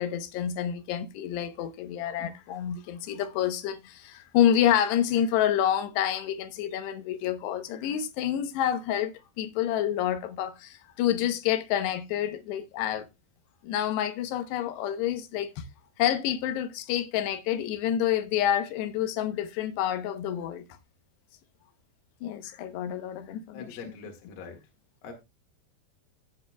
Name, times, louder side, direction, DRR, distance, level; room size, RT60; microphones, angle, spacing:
voice 1, 0.0-13.1 13.6-15.6 16.0-20.6 22.2-23.7, left 10 dB, 90° left, 3.2 m, -28 dB
voice 2, 23.5-24.6 25.0-25.1, left 5 dB, 65° left, 3.4 m, -43 dB
15.5 x 7.8 x 2.3 m
omnidirectional pair, 4.7 m